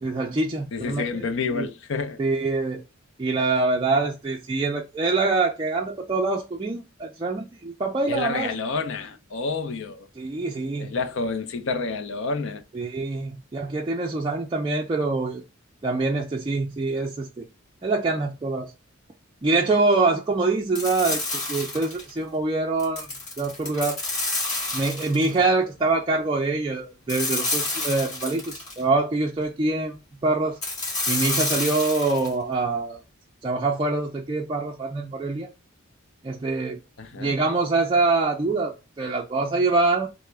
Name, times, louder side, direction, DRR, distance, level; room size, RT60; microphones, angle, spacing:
voice 1, 0.0-1.7 2.2-2.8 3.2-8.6 10.2-11.0 12.7-15.4 15.8-17.4 17.8-18.7 19.4-24.0 24.7-30.6 31.1-33.0 33.4-35.5 36.2-36.8 37.1-40.1, right 3 dB, 20° right, 0.3 m, -25 dB
voice 2, 0.7-2.2 8.1-10.1 10.8-12.6 31.5-31.6 37.0-37.3, left 4 dB, 60° left, 0.5 m, -29 dB
sound 1, 20.7-22.1 22.8-25.3 27.1-28.8 30.6-32.3, left 2 dB, 35° left, 1.3 m, -29 dB
3.3 x 2.1 x 3.2 m
head